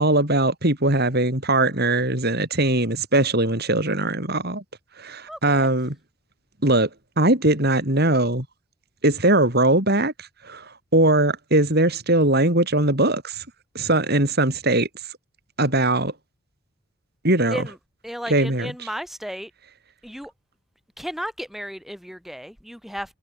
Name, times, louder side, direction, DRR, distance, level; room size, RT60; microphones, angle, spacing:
voice 1, 0.0-4.6 5.0-5.9 6.6-6.9 7.2-8.5 9.0-10.1 10.5-10.6 10.9-13.4 13.7-14.9 15.6-16.1 17.2-17.6 18.3-18.7, right 2 dB, 45° right, 4.3 m, -20 dB
voice 2, 5.3-5.7 17.5-17.8 18.0-19.5 20.0-20.3 21.0-23.2, equal, ahead, 7.1 m, -34 dB
head